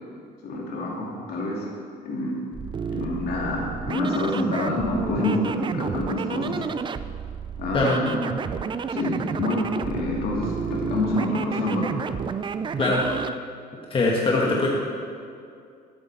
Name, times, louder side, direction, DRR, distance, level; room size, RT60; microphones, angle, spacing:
voice 1, 0.4-1.7 2.0-2.4 2.9-6.6 7.6-8.2 8.9-11.9 14.4-14.6, left 2 dB, 65° left, -2 dB, 2.7 m, -27 dB
sound 1, 2.5-13.4, right 6 dB, 30° right, 0.4 m, -31 dB
voice 2, 13.9-14.7, left 2 dB, 30° left, -3 dB, 1.4 m, -21 dB
13.5 x 8.9 x 4.2 m, 2.3 s
cardioid pair, 110°, 17 cm